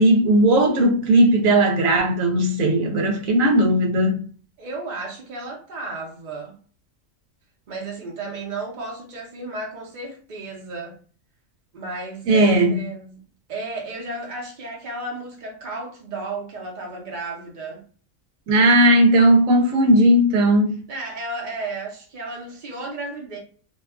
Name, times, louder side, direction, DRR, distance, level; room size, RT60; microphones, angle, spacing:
voice 1, 0.0-4.2 12.3-12.7 18.5-20.7, right 1 dB, 85° right, 1.0 m, -17 dB
voice 2, 4.6-6.6 7.7-10.9 11.7-13.2 13.5-17.8 20.9-23.4, right 2 dB, 45° right, 0.7 m, -33 dB
2.5 x 2.3 x 2.3 m
omnidirectional pair, 1.4 m